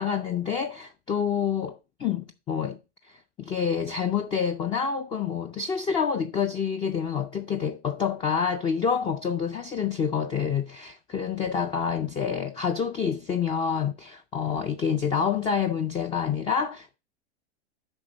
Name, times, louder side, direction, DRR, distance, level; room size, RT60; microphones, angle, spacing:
voice 1, 0.0-2.8 3.0-17.0, left 7 dB, 15° left, 0.3 m, -27 dB
8.8 x 5.4 x 3.9 m
hypercardioid pair, 120°, 34 cm